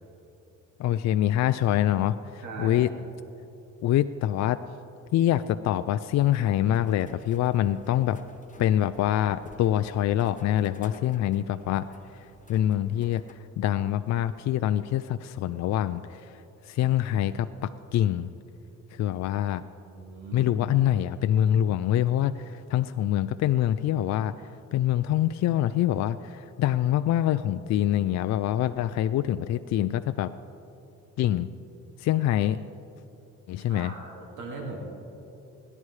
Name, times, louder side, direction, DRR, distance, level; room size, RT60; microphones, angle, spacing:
voice 1, 0.8-2.9 3.8-4.6 5.1-8.2 8.6-11.9 12.5-13.2 13.6-16.3 16.7-18.3 18.9-19.6 20.3-24.3 24.7-30.3 31.2-31.5 32.0-32.6 33.5-33.9, left 12 dB, 65° left, 11 dB, 0.4 m, -25 dB
voice 2, 2.4-2.9 19.9-20.5 33.6-34.8, right 3 dB, 85° right, 0 dB, 2.2 m, -39 dB
sound 1, 6.6-13.3, left 3 dB, 25° left, 1.1 m, -51 dB
25.5 x 11.0 x 3.2 m, 2.8 s
cardioid pair, 90°, 30 cm